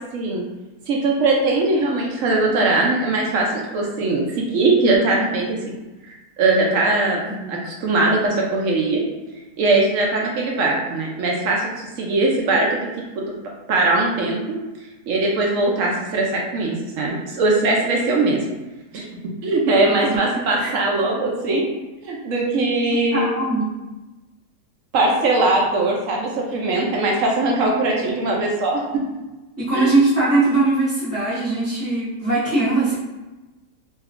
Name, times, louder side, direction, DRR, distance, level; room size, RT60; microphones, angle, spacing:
voice 1, 0.1-0.4 0.9-5.8 6.4-7.2 7.5-9.0 9.6-12.9 13.7-14.6 15.1-18.4 18.9-19.0 19.4-21.6 22.0-23.3 24.9-28.8 29.7-29.9, right 2 dB, 70° right, -1 dB, 0.8 m, -20 dB
voice 2, 7.3-7.6 20.1-20.7 23.1-23.7 27.6-27.7 29.6-32.9, right 2 dB, 15° right, -13 dB, 0.6 m, -21 dB
3.0 x 2.3 x 3.5 m, 1.1 s
omnidirectional pair, 1.8 m